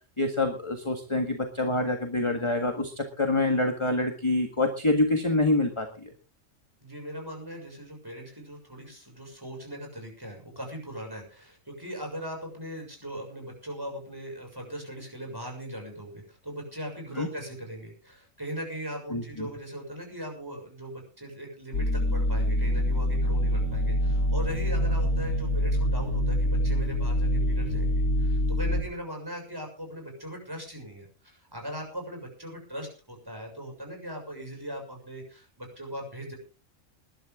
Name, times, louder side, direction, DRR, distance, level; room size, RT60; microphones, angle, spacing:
voice 1, 0.2-6.1 17.2-17.3 19.1-19.5, left 2 dB, 20° left, 4 dB, 1.7 m, -26 dB
voice 2, 6.8-36.3, equal, 15° right, 1 dB, 6.6 m, -39 dB
sound 1, 21.7-28.8, equal, 80° left, 2.5 m, -25 dB
20.5 x 11.5 x 3.7 m, 0.35 s
omnidirectional pair, 1.4 m